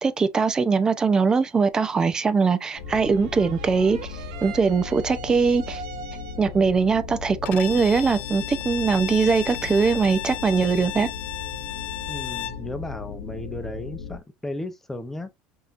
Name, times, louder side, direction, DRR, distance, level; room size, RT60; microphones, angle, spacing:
voice 1, 0.0-5.8 6.4-11.1, right 5 dB, 20° right, 0.6 m, -21 dB
sound 1, 2.8-14.2, left 6 dB, 85° left, 1.0 m, -37 dB
sound 2, 2.8-6.7, right 7 dB, 90° right, 0.8 m, -41 dB
Bowed string instrument, 7.5-12.7, left 13 dB, 50° left, 0.3 m, -34 dB
voice 2, 12.1-15.3, left 1 dB, 10° left, 0.8 m, -35 dB
5.5 x 2.9 x 2.5 m
supercardioid pair, 120°, 3 cm